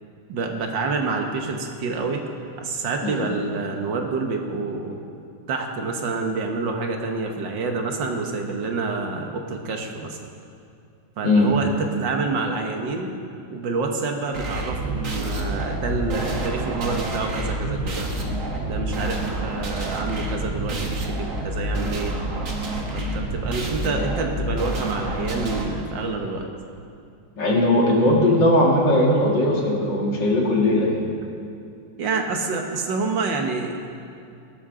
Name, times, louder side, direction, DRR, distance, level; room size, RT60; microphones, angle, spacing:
voice 1, 0.3-2.2 2.6-5.0 5.5-10.2 11.2-13.1 13.5-18.1 18.6-22.1 22.9-26.5 32.0-33.7, right 3 dB, 70° right, 3 dB, 1.8 m, -27 dB
sound 1, 14.3-25.6, right 1 dB, 45° right, 1.7 m, -28 dB
voice 2, 27.4-31.0, left 1 dB, 65° left, -2 dB, 2.6 m, -19 dB
17.5 x 12.5 x 3.8 m, 2.5 s
omnidirectional pair, 2.1 m